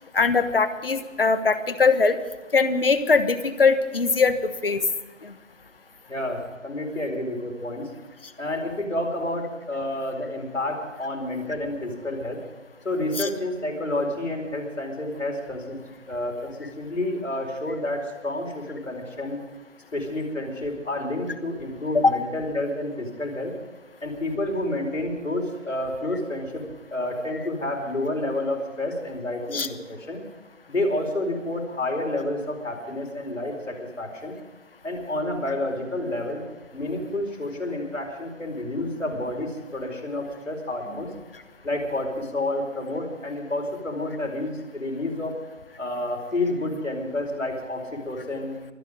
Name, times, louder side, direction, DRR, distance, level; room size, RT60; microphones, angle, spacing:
voice 1, 0.1-2.2 2.5-4.8 5.2-5.3 13.2-13.3 22.0-22.2 29.5-29.7, left 4 dB, 45° left, 11 dB, 1.2 m, -21 dB
voice 2, 6.1-7.9 8.4-12.4 12.8-15.8 16.1-19.4 19.9-23.5 24.0-26.6 26.9-30.2 30.7-34.4 34.8-36.4 36.7-41.1 41.6-45.3 45.8-48.5, left 1 dB, 70° left, 2 dB, 4.7 m, -29 dB
24.5 x 10.0 x 5.1 m, 1.2 s
figure-of-eight pair, 160°, 39 cm